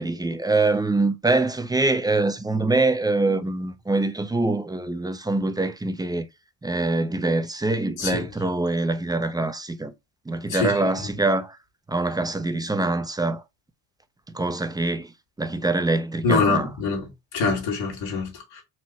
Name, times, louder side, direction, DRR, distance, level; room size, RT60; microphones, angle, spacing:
voice 1, 0.0-6.3 6.6-9.9 10.3-11.6 11.9-13.4 14.3-15.1 15.4-16.7, right 2 dB, 10° right, 0.6 m, -24 dB
voice 2, 10.5-10.9 16.2-17.0 17.3-18.6, left 4 dB, 60° left, 2.4 m, -24 dB
4.6 x 2.9 x 2.9 m
hypercardioid pair, 65°, 49 cm